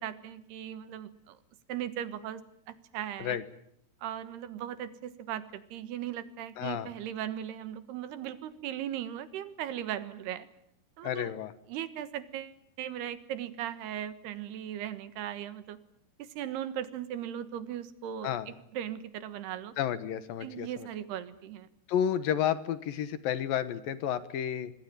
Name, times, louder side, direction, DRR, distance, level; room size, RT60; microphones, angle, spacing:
voice 1, 0.0-1.4 1.7-2.4 2.7-3.4 4.0-10.5 11.0-11.3 11.7-15.8 16.2-19.7 20.4-21.7, right 10 dB, 85° right, 13 dB, 3.5 m, -38 dB
voice 2, 6.6-6.9 11.0-11.5 18.2-18.5 19.8-20.9 21.9-24.7, left 10 dB, 70° left, 14 dB, 2.8 m, -31 dB
26.5 x 20.5 x 9.1 m, 0.73 s
omnidirectional pair, 4.6 m